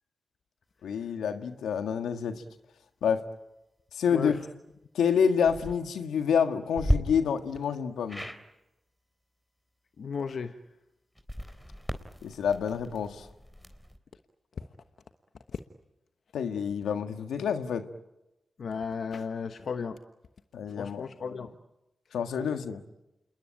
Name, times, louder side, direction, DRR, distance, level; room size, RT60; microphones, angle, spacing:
voice 1, 0.8-2.4 3.0-3.2 3.9-4.3 4.9-8.3 12.2-13.3 16.3-17.9 20.5-21.0 22.1-22.8, left 7 dB, 90° left, 7 dB, 1.6 m, -28 dB
sound 1, 5.4-5.7 6.7-7.0 8.1-8.4 11.1-14.0, equal, 5° left, 3.9 m, -33 dB
voice 2, 10.0-10.6 14.6-14.7 15.5-15.6 18.6-20.0 20.7-21.5, left 5 dB, 70° left, 8 dB, 1.1 m, -34 dB
28.0 x 21.0 x 9.0 m, 0.92 s
supercardioid pair, 45°, 0 cm